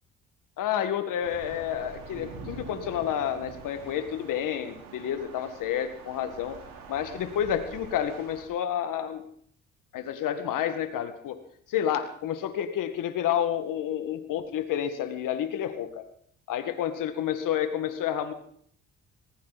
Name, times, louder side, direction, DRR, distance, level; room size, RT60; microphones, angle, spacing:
voice 1, 0.6-6.6 6.9-9.2 9.9-11.4 11.7-16.0 16.5-18.3, left 10 dB, 70° left, 8 dB, 1.8 m, -30 dB
sound 1, 1.2-8.5, right 4 dB, 85° right, 4.3 m, -45 dB
19.0 x 16.0 x 4.1 m, 0.63 s
supercardioid pair, 70°, 33 cm